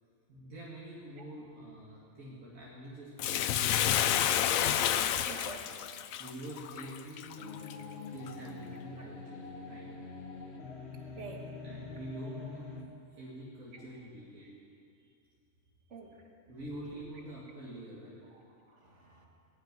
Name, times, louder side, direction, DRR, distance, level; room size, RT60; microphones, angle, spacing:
voice 1, 0.3-4.4 6.2-7.5 8.1-10.2 11.6-12.7 13.1-14.6 16.5-18.2, right 1 dB, 80° right, -7 dB, 2.6 m, -46 dB
Bathtub (filling or washing), 3.2-7.7 8.3-8.4, left 10 dB, 80° left, 1.0 m, -30 dB
voice 2, 5.2-5.6 9.0-9.1 11.2-11.4 13.7-13.9 14.4-14.5 15.9-16.3 18.2-19.3, right 4 dB, 60° right, 1 dB, 1.9 m, -49 dB
sound 1, 7.4-12.8, left 4 dB, 50° left, 1.5 m, -45 dB
19.5 x 6.8 x 9.5 m, 2.5 s
omnidirectional pair, 1.4 m